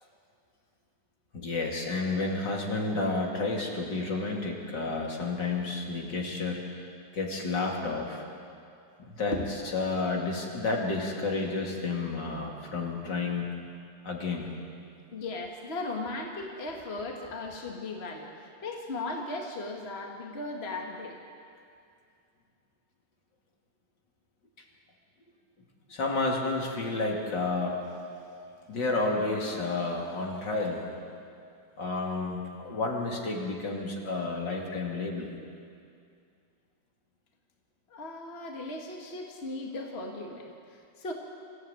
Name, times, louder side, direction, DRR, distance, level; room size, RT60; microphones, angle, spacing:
voice 1, 1.3-6.6 7.1-8.2 9.0-9.4 9.7-13.5 14.0-14.5 25.9-27.8 28.7-30.9 31.8-35.3, left 3 dB, 65° left, -1 dB, 3.3 m, -31 dB
voice 2, 15.1-21.2 37.9-41.1, left 2 dB, 30° left, 1 dB, 2.1 m, -37 dB
25.5 x 14.5 x 9.1 m, 2.4 s
omnidirectional pair, 2.1 m